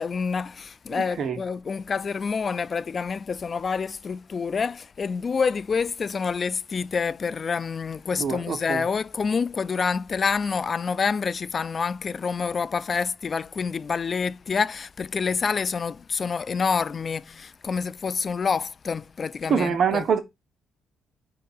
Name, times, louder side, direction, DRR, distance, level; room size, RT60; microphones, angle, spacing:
voice 1, 0.0-20.0, left 5 dB, 40° left, 0.3 m, -27 dB
voice 2, 0.9-1.4 8.2-8.9 19.5-20.2, right 6 dB, 60° right, 1.3 m, -25 dB
5.2 x 3.7 x 5.6 m
cardioid pair, 100°, 0 cm